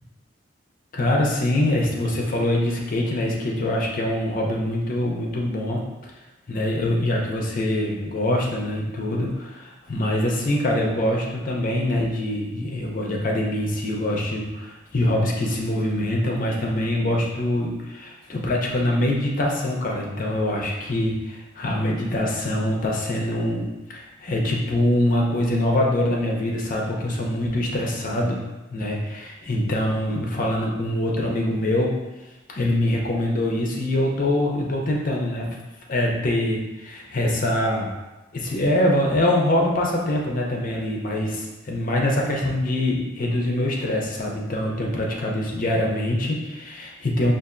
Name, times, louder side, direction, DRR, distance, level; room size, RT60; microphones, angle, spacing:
voice 1, 0.9-5.8 6.5-28.4 28.7-32.0 32.5-35.6 35.9-37.9 38.3-47.3, left 1 dB, 45° left, -1 dB, 0.6 m, -24 dB
5.6 x 2.5 x 2.5 m, 1.1 s
head